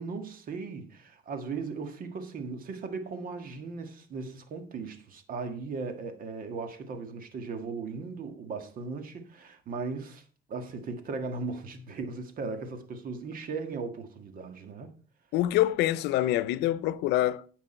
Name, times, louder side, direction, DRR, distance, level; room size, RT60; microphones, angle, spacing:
voice 1, 0.0-14.9, right 4 dB, 55° right, 1.7 m, -37 dB
voice 2, 15.3-17.4, left 14 dB, 85° left, 0.7 m, -25 dB
9.9 x 7.4 x 4.4 m
cardioid pair, 110°, 17 cm